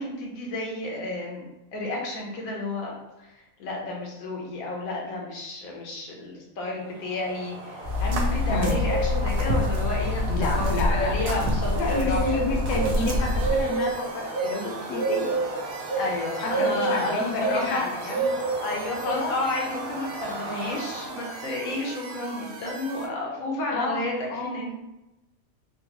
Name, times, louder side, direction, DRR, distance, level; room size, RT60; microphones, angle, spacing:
voice 1, 0.0-1.4 1.7-2.9 3.2-10.2 10.5-12.4 15.9-17.8 18.6-24.7, left 2 dB, 90° left, -1 dB, 1.2 m, -31 dB
sound 1, 6.9-21.6, right 3 dB, 45° right, 1.1 m, -31 dB
sound 2, 7.8-13.6, left 2 dB, 65° right, 0.8 m, -26 dB
voice 2, 8.5-8.8 10.3-11.4 11.8-15.4 16.4-18.4 19.1-19.3 23.7-24.6, left 3 dB, 70° left, 0 dB, 0.9 m, -30 dB
sound 3, 13.0-23.1, right 4 dB, 90° right, 1.0 m, -41 dB
3.7 x 2.2 x 2.8 m, 0.95 s
omnidirectional pair, 1.4 m